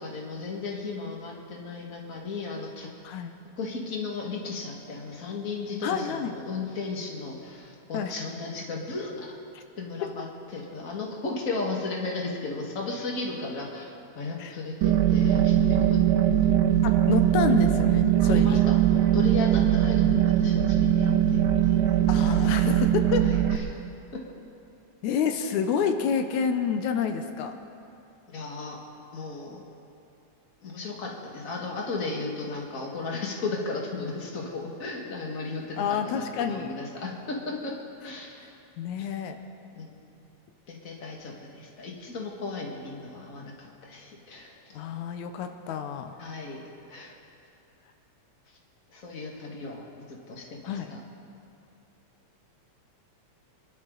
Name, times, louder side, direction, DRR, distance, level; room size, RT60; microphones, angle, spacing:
voice 1, 0.0-2.9 3.6-9.3 9.8-10.3 10.5-16.0 16.4-16.5 18.2-22.0 23.2-23.8 24.1-24.2 28.3-28.8 29.1-29.6 30.6-37.8 38.0-38.5 39.8-40.0 40.7-44.8 46.2-46.6 46.9-47.2 48.9-51.0, left 3 dB, 30° left, -1 dB, 2.1 m, -35 dB
voice 2, 5.8-6.3 7.9-8.1 9.6-9.7 14.4-14.6 16.8-18.6 22.1-23.3 25.0-27.5 35.8-36.7 38.4-38.5 38.8-39.4 44.7-46.2 50.7-50.9, left 7 dB, 85° left, 7 dB, 2.2 m, -28 dB
sound 1, 14.8-23.6, right 11 dB, 60° right, 1.5 m, -21 dB
27.5 x 12.0 x 4.0 m, 2.7 s
omnidirectional pair, 3.3 m